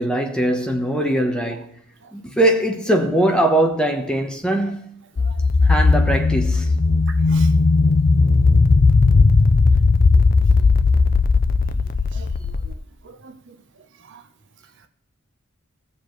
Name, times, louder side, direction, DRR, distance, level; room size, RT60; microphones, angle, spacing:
voice 1, 0.0-1.7 2.1-4.8 5.6-6.7, right 1 dB, 5° left, 0.9 m, -21 dB
sound 1, 5.2-12.7, left 3 dB, 40° left, 0.4 m, -16 dB
voice 2, 13.0-13.5 14.0-14.2, right 5 dB, 55° right, 0.8 m, -43 dB
16.5 x 7.0 x 3.2 m
head